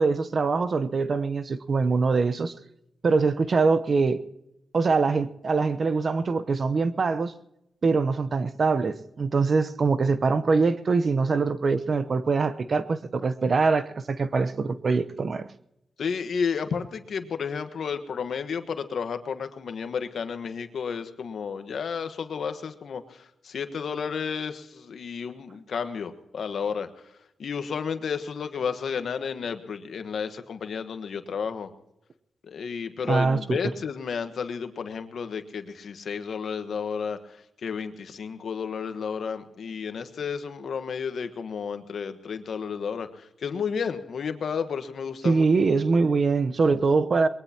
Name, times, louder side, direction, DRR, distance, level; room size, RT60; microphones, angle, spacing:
voice 1, 0.0-2.5 3.0-4.2 4.7-7.3 7.8-15.5 33.1-33.6 45.2-47.3, right 4 dB, 55° right, 0.9 m, -23 dB
voice 2, 16.0-26.9 27.4-31.7 32.5-45.5, left 6 dB, 70° left, 1.4 m, -32 dB
22.5 x 21.0 x 3.0 m
cardioid pair, 55°, 0 cm